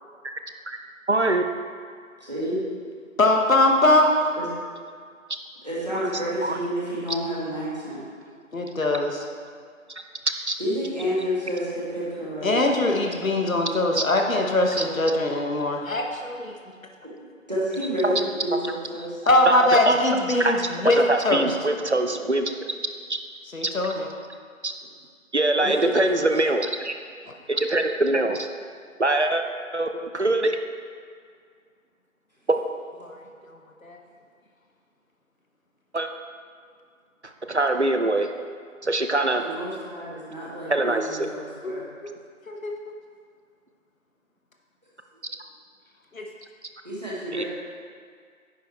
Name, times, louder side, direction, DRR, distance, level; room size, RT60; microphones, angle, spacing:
voice 1, 1.1-1.4 6.4-6.6 10.5-10.6 14.0-14.1 14.8-14.9 18.0-18.1 19.5-20.0 20.4-20.5 21.1-22.5 23.1-23.2 23.6-23.7 24.6-24.7 25.3-26.9 27.5-28.5 29.0-29.4 29.7-30.6 32.5-32.6 35.9-36.1 37.5-38.3 38.8-39.4 40.7-41.3 47.3-47.4, right 2 dB, 55° right, 5 dB, 0.6 m, -23 dB
voice 2, 2.2-2.6 4.4-4.5 5.6-8.0 10.6-12.6 17.5-19.2 25.6-26.3 39.4-41.8 46.8-47.4, equal, 30° right, -8 dB, 1.7 m, -29 dB
voice 3, 3.2-4.2 8.5-9.2 12.4-16.5 19.3-21.0 21.2-21.4 23.5-24.1 33.0-33.2 33.8-34.0 41.6-42.1 42.5-42.7 46.1-46.2, left 2 dB, 75° left, 2 dB, 1.1 m, -22 dB
10.0 x 5.0 x 4.3 m, 2.1 s
figure-of-eight pair, 180°, 41 cm